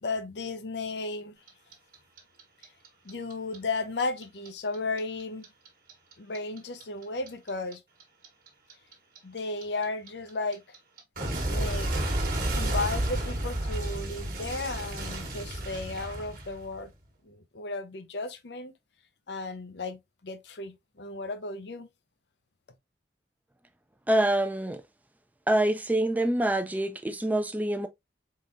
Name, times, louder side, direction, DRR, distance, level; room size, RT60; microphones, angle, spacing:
voice 1, 0.0-1.4 3.0-5.4 6.2-7.8 9.2-10.8 11.5-11.9 12.5-16.9 17.2-18.7 19.3-21.9, left 3 dB, 75° left, 0.7 m, -34 dB
Clock, 1.5-4.5 4.7-7.7 8.0-16.9, right 1 dB, 50° right, 1.2 m, -31 dB
voice 2, 24.1-24.8 25.5-27.9, right 1 dB, 10° right, 0.4 m, -26 dB
4.2 x 3.8 x 2.5 m
head